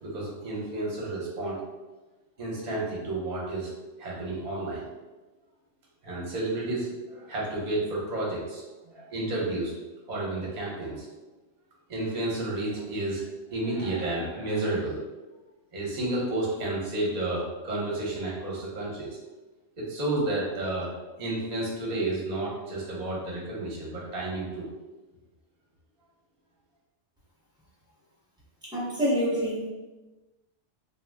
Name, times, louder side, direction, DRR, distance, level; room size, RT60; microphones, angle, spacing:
voice 1, 0.0-1.6 2.4-3.7 4.0-4.9 6.0-9.7 10.1-11.1 11.9-13.2 13.5-15.0 15.7-19.2 19.8-24.7, right 2 dB, 40° right, -5 dB, 0.7 m, -31 dB
voice 2, 28.7-29.7, equal, 5° right, -8 dB, 0.6 m, -26 dB
2.2 x 2.0 x 3.4 m, 1.2 s
omnidirectional pair, 1.3 m